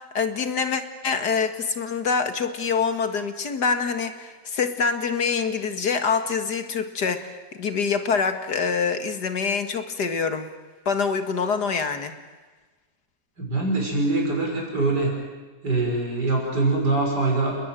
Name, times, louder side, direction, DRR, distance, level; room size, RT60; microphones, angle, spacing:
voice 1, 0.0-10.5 10.9-12.1, left 5 dB, 75° left, 8 dB, 2.4 m, -25 dB
voice 2, 13.4-15.1 15.6-17.5, right 3 dB, 80° right, -1 dB, 6.5 m, -23 dB
29.5 x 20.5 x 9.1 m, 1.3 s
omnidirectional pair, 1.8 m